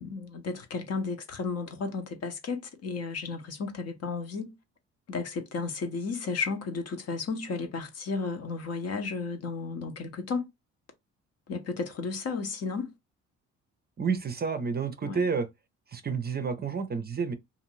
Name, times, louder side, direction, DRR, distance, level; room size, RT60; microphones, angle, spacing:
voice 1, 0.0-4.5 5.1-10.5 11.5-12.9 15.0-15.2, left 4 dB, 45° left, 0.8 m, -33 dB
voice 2, 14.0-15.5 15.9-17.3, right 5 dB, 30° right, 0.5 m, -30 dB
2.5 x 2.5 x 3.0 m
hypercardioid pair, 55°, 34 cm